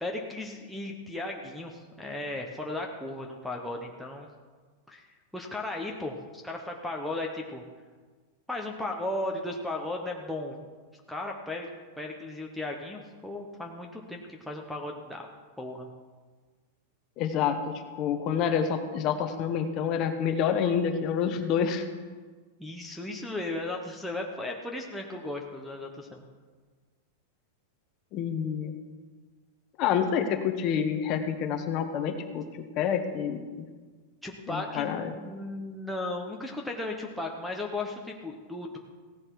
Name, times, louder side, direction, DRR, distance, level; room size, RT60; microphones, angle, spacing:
voice 1, 0.0-4.3 4.9-5.1 5.3-7.6 8.5-10.7 11.1-11.7 12.0-15.3 15.6-15.9 22.6-26.2 34.2-38.8, left 2 dB, ahead, -1 dB, 0.8 m, -36 dB
voice 2, 17.2-21.8 28.1-28.7 29.8-32.5 32.8-33.7 34.5-35.1, left 7 dB, 30° left, 7 dB, 0.9 m, -28 dB
16.0 x 10.5 x 4.6 m, 1.4 s
supercardioid pair, 175°, 0 cm